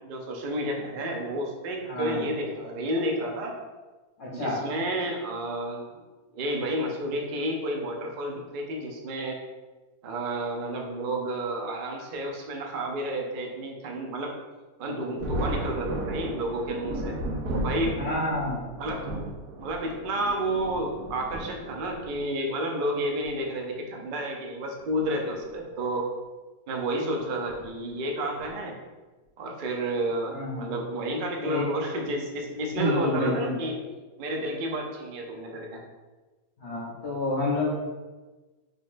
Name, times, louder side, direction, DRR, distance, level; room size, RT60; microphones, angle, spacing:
voice 1, 0.0-3.5 4.3-5.8 6.3-9.4 10.0-14.3 14.8-17.2 17.5-18.0 18.8-19.1 19.6-26.1 26.7-28.8 29.4-33.7 34.2-35.8, right 1 dB, 65° right, 1 dB, 0.5 m, -31 dB
voice 2, 1.8-2.3 4.2-4.6 18.0-18.6 30.3-30.7 31.4-31.7 32.7-33.8 36.6-37.7, left 1 dB, 55° left, -6 dB, 1.0 m, -29 dB
Thunder, 15.2-22.2 23.2-23.3 24.8-25.1 25.4-25.5 27.5-27.7 28.4-28.7, right 1 dB, 90° right, 1.2 m, -35 dB
3.9 x 3.3 x 2.5 m, 1.2 s
omnidirectional pair, 1.6 m